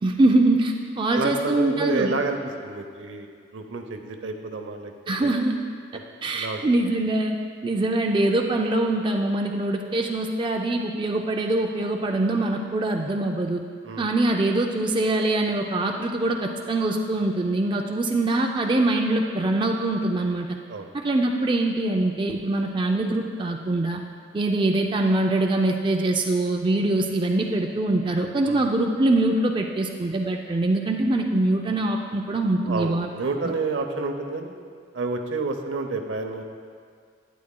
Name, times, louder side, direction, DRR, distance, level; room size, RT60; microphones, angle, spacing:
voice 1, 0.0-2.1 5.1-5.6 6.2-7.4 7.6-13.6 14.0-20.6 20.9-24.0 24.3-33.1, right 2 dB, 25° right, 2 dB, 0.4 m, -23 dB
voice 2, 1.1-4.9 5.2-5.3 5.9-6.0 6.3-6.6 13.8-14.1 20.7-20.9 28.4-28.6 32.7-34.6 34.9-36.4, right 3 dB, 75° right, 5 dB, 0.7 m, -29 dB
11.5 x 9.4 x 2.2 m, 2.1 s
head